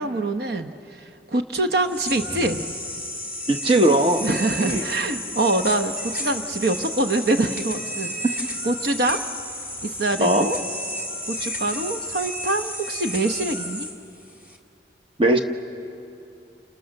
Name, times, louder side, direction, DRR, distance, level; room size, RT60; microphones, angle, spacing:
voice 1, 0.0-2.6 4.2-8.1 8.6-9.2 9.8-10.6 11.2-13.9, right 2 dB, 65° right, 7 dB, 0.9 m, -25 dB
sound 1, 1.7-14.6, equal, 10° right, 2.0 m, -32 dB
voice 2, 3.5-4.3 4.6-4.8 10.2-10.5 15.2-15.4, right 1 dB, 30° right, 5 dB, 1.1 m, -18 dB
30.0 x 27.5 x 6.6 m, 2.7 s
head